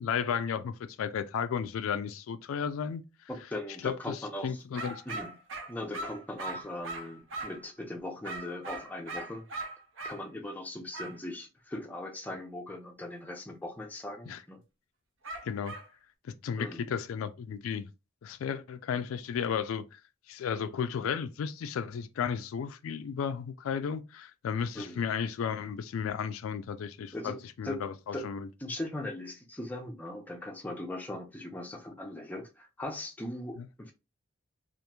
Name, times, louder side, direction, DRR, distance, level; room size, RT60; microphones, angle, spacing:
voice 1, 0.0-3.0 3.8-5.0 14.3-14.4 15.4-15.7 16.2-17.9 18.2-20.0 20.3-28.5 33.6-33.7, left 7 dB, 80° left, 0.3 m, -34 dB
voice 2, 3.3-4.6 5.1-5.3 5.7-9.5 10.0-14.6 16.6-16.9 24.7-25.1 27.1-27.4 27.6-27.8 28.1-28.2 28.6-33.9, left 1 dB, 10° left, 0.4 m, -39 dB
sound 1, 4.7-7.7 8.2-10.2 10.9-11.2 15.2-15.9, right 2 dB, 65° right, 0.6 m, -40 dB
2.9 x 2.4 x 2.2 m
head